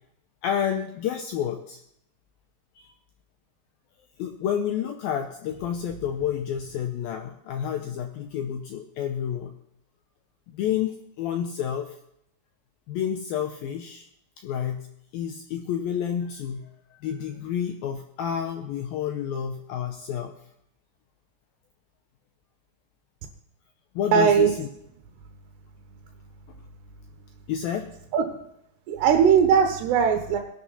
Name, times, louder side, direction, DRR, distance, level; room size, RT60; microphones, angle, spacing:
voice 1, 0.4-1.8 4.2-9.5 10.5-12.0 12.9-14.1 14.4-14.9 15.1-20.3 24.0-24.7 27.5-27.9, left 9 dB, 85° left, 6 dB, 2.1 m, -29 dB
voice 2, 24.1-24.5 28.1-28.2 28.9-30.4, right 7 dB, 75° right, 4 dB, 3.1 m, -19 dB
18.5 x 11.5 x 4.1 m, 0.77 s
omnidirectional pair, 5.2 m